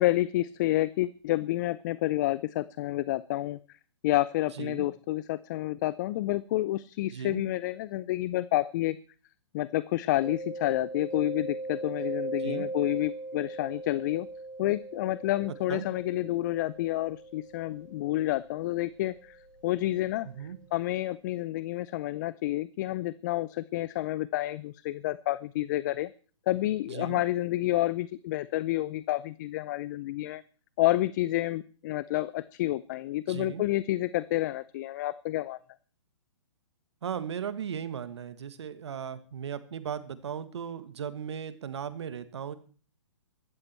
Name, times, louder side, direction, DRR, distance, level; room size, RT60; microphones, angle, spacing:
voice 1, 0.0-3.8 4.0-9.0 9.5-14.3 14.6-26.1 26.5-30.4 30.8-35.6, left 16 dB, 40° left, 18 dB, 0.6 m, -29 dB
voice 2, 7.1-7.4 12.4-12.7 15.7-15.9 20.2-20.6 26.9-27.2 33.3-33.6 37.0-42.5, right 8 dB, 65° right, 13 dB, 1.8 m, -37 dB
Mallet percussion, 10.2-19.8, right 2 dB, 5° left, 6.9 m, -40 dB
16.0 x 13.5 x 4.5 m, 0.40 s
hypercardioid pair, 130°, 15 cm